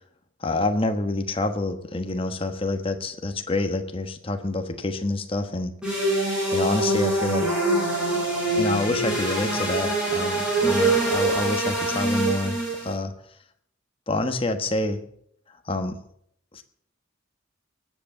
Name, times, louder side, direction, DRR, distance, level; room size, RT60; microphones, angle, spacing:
voice 1, 0.4-5.7 6.5-7.5 8.5-13.1 14.1-15.0 15.6-16.0 16.5-16.6, left 2 dB, 25° left, 7 dB, 1.2 m, -27 dB
sound 1, 5.8-12.9, right 2 dB, 5° right, 6.8 m, -24 dB
19.5 x 8.1 x 7.2 m, 0.69 s
head